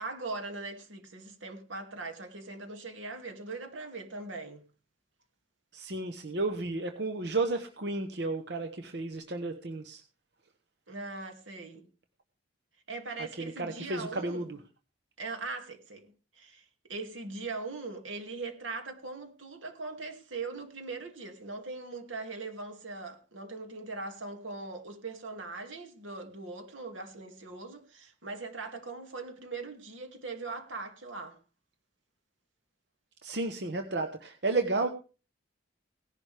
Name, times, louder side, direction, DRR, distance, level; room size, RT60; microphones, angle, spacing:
voice 1, 0.0-4.6 10.9-11.9 12.9-14.5 15.2-16.6 16.9-31.4, right 3 dB, 85° right, 2.3 m, -40 dB
voice 2, 5.7-10.0 13.2-14.6 33.2-34.9, right 3 dB, 60° right, 0.9 m, -32 dB
17.5 x 11.0 x 3.4 m
head